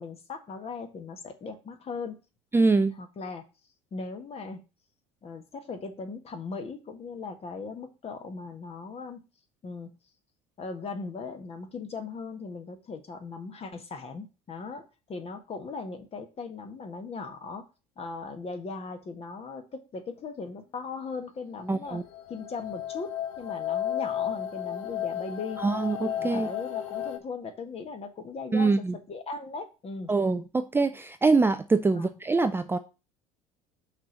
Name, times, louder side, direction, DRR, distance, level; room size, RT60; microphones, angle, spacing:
voice 1, 0.0-2.2 3.0-3.4 3.9-4.6 5.2-9.2 9.6-9.9 10.6-17.7 18.0-22.0 22.3-25.6 26.1-30.1 31.9-32.1, left 4 dB, 35° left, 1.7 m, -38 dB
voice 2, 2.5-3.0 21.7-22.0 25.6-26.5 28.5-28.9 30.1-32.8, right 3 dB, 10° right, 0.5 m, -24 dB
sound 1, 21.7-27.2, left 10 dB, 70° left, 1.4 m, -33 dB
6.0 x 4.5 x 6.5 m
hypercardioid pair, 70°, 18 cm